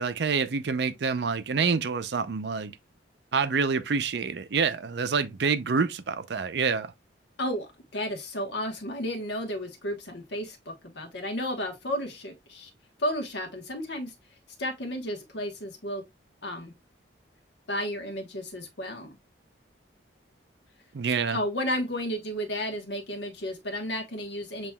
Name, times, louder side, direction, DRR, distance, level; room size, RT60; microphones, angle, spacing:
voice 1, 0.0-2.7 3.3-6.9 20.9-21.4, right 5 dB, 60° right, 0.5 m, -27 dB
voice 2, 7.4-12.7 13.0-14.1 14.6-16.0 16.4-16.7 17.7-19.2 21.3-24.7, equal, 65° left, 1.2 m, -33 dB
7.1 x 3.0 x 2.2 m
head